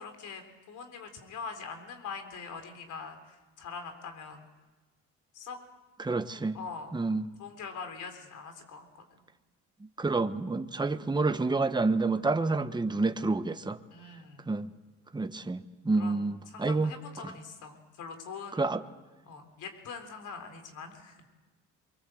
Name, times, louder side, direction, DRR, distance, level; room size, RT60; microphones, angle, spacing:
voice 1, 0.0-4.4 5.3-5.6 6.5-6.9 7.4-9.0 13.9-14.5 16.0-18.7 19.3-21.2, left 5 dB, 80° left, 6 dB, 3.8 m, -43 dB
voice 2, 6.0-6.6 6.9-7.2 10.0-13.8 14.5-14.7 15.1-16.9 17.2-17.3 18.5-18.8, right 3 dB, 15° right, 9 dB, 1.1 m, -28 dB
24.0 x 23.5 x 7.8 m, 1.2 s
cardioid pair, 90°, 30 cm